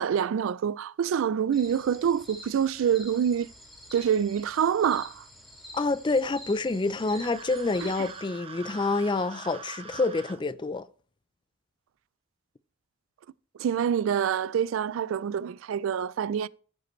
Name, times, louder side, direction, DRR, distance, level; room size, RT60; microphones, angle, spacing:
voice 1, 0.0-3.5 3.9-5.2 7.8-7.9 13.6-16.5, right 8 dB, 85° right, 0.3 m, -26 dB
sound 1, 1.5-8.2, left 1 dB, ahead, 2.2 m, -48 dB
voice 2, 5.7-10.9, left 3 dB, 25° left, 0.4 m, -27 dB
sound 2, 6.9-10.4, right 5 dB, 30° right, 0.8 m, -44 dB
14.0 x 5.1 x 3.1 m
head